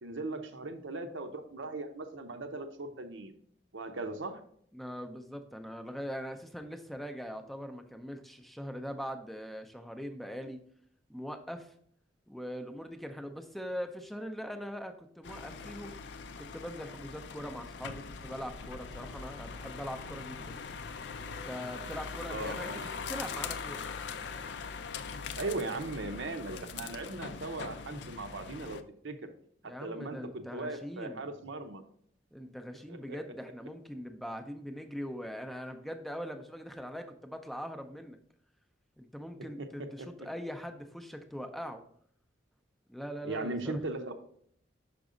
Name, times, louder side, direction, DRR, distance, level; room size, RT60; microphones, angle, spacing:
voice 1, 0.0-3.3 3.7-4.4 22.3-22.9 25.4-29.3 29.8-31.8 32.9-33.0 43.2-44.1, right 2 dB, 85° right, 6 dB, 0.8 m, -38 dB
voice 2, 4.7-10.6 11.1-11.7 12.3-16.0 16.4-20.6 21.5-22.7 23.1-23.9 29.6-31.2 32.3-38.2 39.0-41.8 42.9-43.8, equal, ahead, 6 dB, 0.5 m, -41 dB
sound 1, 15.2-28.8, left 5 dB, 65° left, 0.4 m, -42 dB
5.9 x 5.2 x 3.7 m, 0.65 s
head